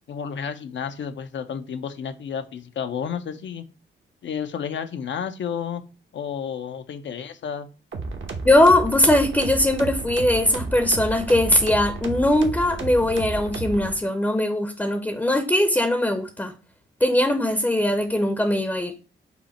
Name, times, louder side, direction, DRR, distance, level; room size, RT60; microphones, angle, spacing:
voice 1, 0.1-3.6 4.2-5.8 6.1-7.7, left 7 dB, 65° left, 0.6 m, -31 dB
sound 1, 7.9-13.9, right 3 dB, 65° right, 1.0 m, -32 dB
voice 2, 8.4-16.5 17.0-18.9, left 1 dB, 10° left, 0.6 m, -20 dB
5.7 x 2.1 x 4.1 m
cardioid pair, 55°, 21 cm